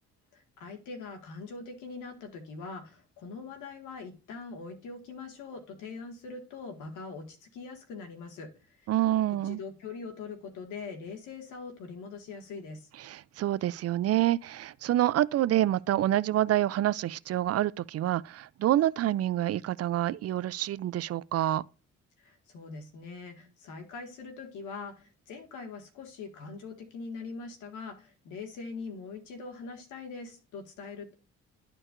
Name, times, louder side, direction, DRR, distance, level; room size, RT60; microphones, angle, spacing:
voice 1, 0.3-8.5 8.8-8.9 9.4-12.9 22.2-31.1, left 4 dB, 90° left, 1.9 m, -42 dB
voice 2, 8.9-9.6 13.0-21.6, right 13 dB, 55° right, 0.4 m, -27 dB
12.0 x 4.6 x 2.5 m
cardioid pair, 90°, 30 cm